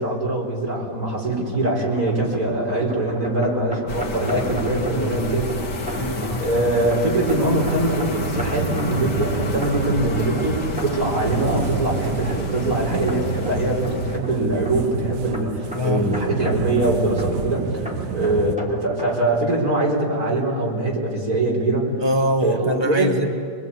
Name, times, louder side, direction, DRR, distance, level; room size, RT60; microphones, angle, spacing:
voice 1, 0.0-5.6 6.4-21.9 22.4-23.2, right 1 dB, 60° right, -2 dB, 4.9 m, -23 dB
sound 1, 0.8-19.2, right 1 dB, 5° right, 3.1 m, -36 dB
sound 2, 3.9-14.2, left 2 dB, 85° left, 2.1 m, -31 dB
voice 2, 4.9-5.4 6.0-6.4 15.7-16.1 22.0-23.3, equal, 20° left, 3 dB, 1.0 m, -23 dB
sound 3, 6.5-18.6, right 7 dB, 85° right, 1.5 m, -30 dB
24.5 x 22.0 x 8.5 m, 2.3 s
omnidirectional pair, 1.7 m